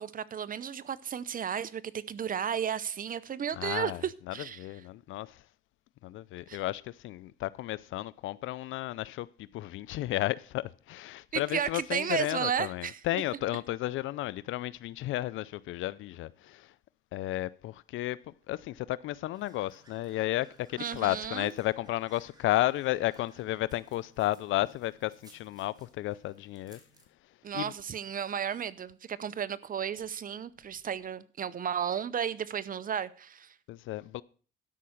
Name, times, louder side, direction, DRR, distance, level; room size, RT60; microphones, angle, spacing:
voice 1, 0.0-4.6 6.5-6.6 11.3-13.2 20.8-21.5 27.4-33.5, right 8 dB, 45° right, 0.7 m, -33 dB
voice 2, 3.6-5.4 6.0-16.7 17.1-26.8 27.5-27.7 33.7-34.2, left 15 dB, 80° left, 0.4 m, -33 dB
sound 1, 19.3-27.0, right 1 dB, 20° right, 2.5 m, -61 dB
12.5 x 5.6 x 6.4 m
cardioid pair, 90°, 20 cm